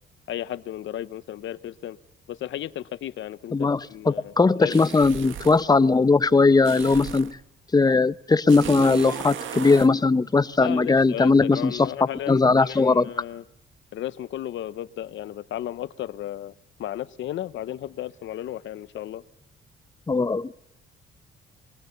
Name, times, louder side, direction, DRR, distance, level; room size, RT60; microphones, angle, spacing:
voice 1, 0.3-2.0 2.3-3.6 3.9-4.3 4.6-4.8 10.6-13.4 13.9-16.5 16.8-19.2, left 12 dB, 70° left, 14 dB, 0.9 m, -34 dB
voice 2, 4.1-7.4 7.7-11.9 12.3-13.1 20.1-20.5, left 3 dB, 20° left, 16 dB, 0.8 m, -19 dB
sound 1, 4.7-5.7 6.6-7.4 8.5-9.9, right 9 dB, 75° right, 1.9 m, -35 dB
23.5 x 18.5 x 8.2 m, 0.82 s
cardioid pair, 90°, 20 cm